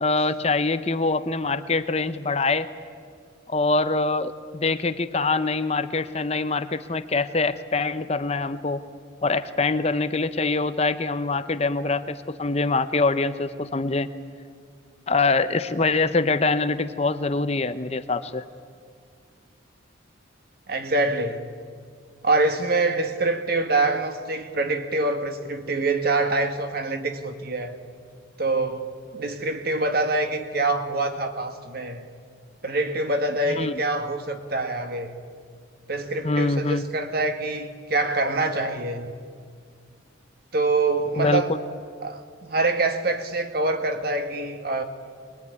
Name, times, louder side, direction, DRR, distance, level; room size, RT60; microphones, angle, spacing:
voice 1, 0.0-2.7 3.5-8.8 9.2-14.1 15.1-18.4 33.5-33.8 36.2-36.8 41.2-41.4, left 3 dB, 30° left, 0.7 m, -24 dB
voice 2, 20.7-21.4 22.2-27.8 28.4-32.1 32.6-35.1 35.9-39.1 40.5-41.5 42.0-44.8, right 2 dB, 50° right, 1.8 m, -25 dB
22.0 x 21.5 x 9.6 m
head